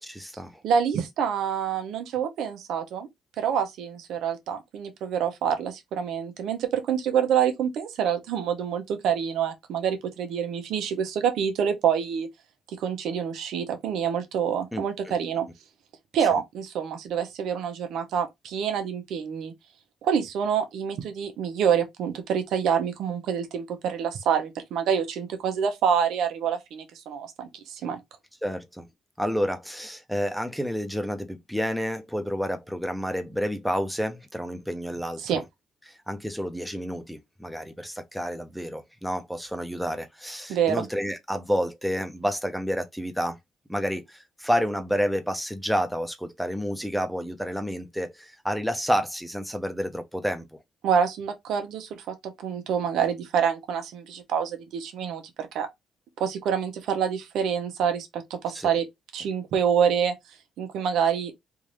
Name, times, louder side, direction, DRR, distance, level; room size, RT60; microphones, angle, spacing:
voice 1, 0.0-0.6 14.7-15.1 28.4-28.8 29.2-35.4 35.9-43.4 43.7-50.4 58.5-58.7, equal, ahead, 0.8 m, -29 dB
voice 2, 0.6-3.1 3.4-12.3 12.7-15.5 16.1-19.5 20.0-28.0 35.2-35.4 40.5-40.9 50.8-55.7 56.2-58.8 59.1-60.1 60.6-61.3, right 7 dB, 80° right, 1.0 m, -27 dB
3.6 x 2.7 x 3.1 m
cardioid pair, 90°, 0 cm